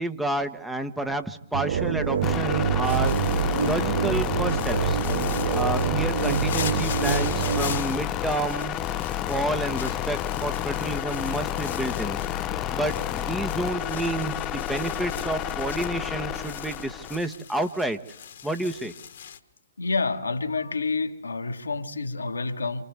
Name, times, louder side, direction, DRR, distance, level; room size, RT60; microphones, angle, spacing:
voice 1, 0.0-3.2 3.5-5.0 5.5-8.8 9.2-12.2 12.7-18.0 18.4-18.9, right 1 dB, 5° right, 1.2 m, -30 dB
sound 1, 1.5-7.8, right 8 dB, 55° right, 0.7 m, -26 dB
sound 2, 2.2-17.2, left 11 dB, 25° left, 0.8 m, -30 dB
sound 3, 2.8-19.4, left 8 dB, 60° left, 1.6 m, -40 dB
voice 2, 19.8-22.8, left 3 dB, 80° left, 1.8 m, -28 dB
28.5 x 27.5 x 3.5 m
figure-of-eight pair, 120°, 0 cm